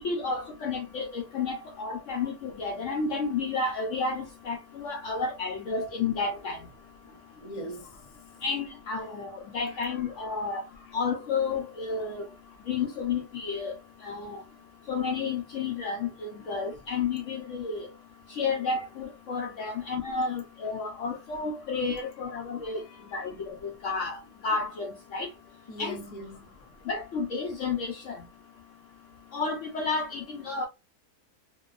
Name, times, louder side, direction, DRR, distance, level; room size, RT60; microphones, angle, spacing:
voice 1, 0.0-6.6 8.4-10.6 10.9-12.2 12.7-13.7 14.0-14.4 14.9-17.9 18.4-22.8 23.1-24.2 24.4-25.3 25.8-26.0 26.9-28.2 29.3-30.7, left 4 dB, 65° left, 0.8 m, -31 dB
voice 2, 7.0-7.9 9.6-10.0 19.7-19.8 22.9-23.0 25.7-26.4, equal, 35° left, 0.6 m, -41 dB
2.9 x 2.1 x 2.3 m
omnidirectional pair, 1.7 m